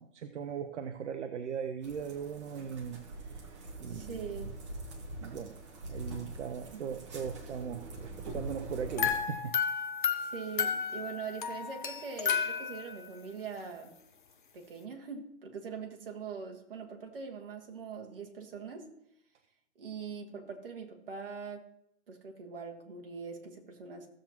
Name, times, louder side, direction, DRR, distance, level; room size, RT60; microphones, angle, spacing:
voice 1, 0.0-3.0 3.3-3.4 3.8-4.2 5.2-5.6 5.9-9.6, right 7 dB, 65° right, 7 dB, 0.8 m, -39 dB
sound 1, 1.8-9.2, right 2 dB, 25° right, 1.2 m, -44 dB
voice 2, 3.9-4.5 6.7-6.9 10.2-13.9 14.5-18.9 19.8-21.6 22.1-24.1, right 6 dB, 45° right, 2 dB, 1.7 m, -42 dB
sound 2, 9.0-13.1, left 7 dB, 40° left, 0.7 m, -32 dB
15.5 x 7.4 x 2.9 m, 0.75 s
hypercardioid pair, 165°, 38 cm